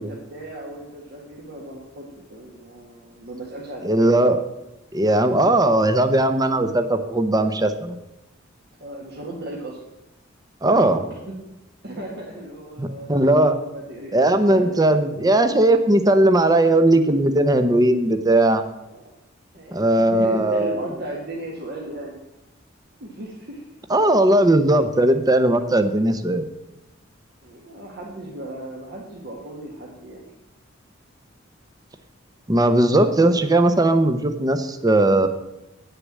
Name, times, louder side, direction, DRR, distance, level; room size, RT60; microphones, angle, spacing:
voice 1, 0.0-4.1 8.8-9.8 10.7-10.9 11.3-11.4 11.8-15.4 18.9-19.1 19.5-22.2 23.0-23.6 27.4-30.3, right 1 dB, 55° right, -3 dB, 1.7 m, -36 dB
voice 2, 3.8-4.4 4.9-8.0 10.6-11.0 12.8-13.6 14.1-18.6 19.7-20.8 23.9-26.4 32.5-35.3, right 1 dB, 20° right, 9 dB, 0.8 m, -18 dB
9.5 x 6.7 x 7.4 m, 0.94 s
head